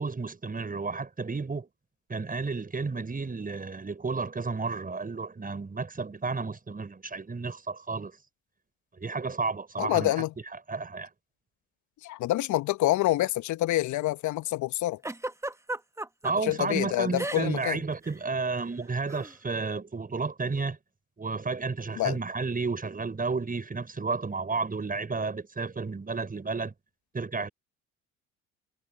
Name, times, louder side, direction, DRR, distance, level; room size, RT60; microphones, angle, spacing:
voice 1, 0.0-1.7 2.1-8.2 9.0-10.1 10.7-11.1 16.2-20.8 21.2-26.7 27.1-27.5, right 4 dB, 25° right, 6.4 m, -32 dB
voice 2, 9.8-10.3 12.0-15.0 16.4-17.8 22.0-22.2, left 16 dB, 55° left, 1.4 m, -27 dB
Giggle, 15.0-16.3 17.2-17.7 17.9-18.2 19.1-19.3, right 1 dB, 10° right, 1.6 m, -34 dB
hypercardioid pair, 60°, 34 cm